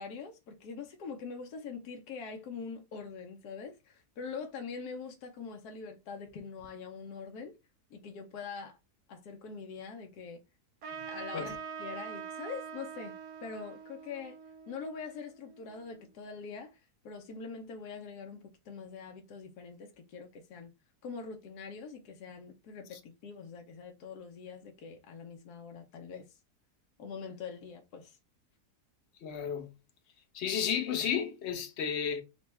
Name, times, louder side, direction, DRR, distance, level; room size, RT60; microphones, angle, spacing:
voice 1, 0.0-7.6 7.9-8.8 9.1-10.4 11.1-14.4 14.7-16.8 17.0-20.7 21.0-26.2 27.0-28.2, left 5 dB, 75° left, 1.3 m, -44 dB
Trumpet, 10.8-15.8, right 7 dB, 75° right, 1.5 m, -44 dB
voice 2, 29.2-29.7 30.3-32.2, left 7 dB, 50° left, 0.9 m, -32 dB
4.6 x 2.2 x 4.1 m
omnidirectional pair, 1.7 m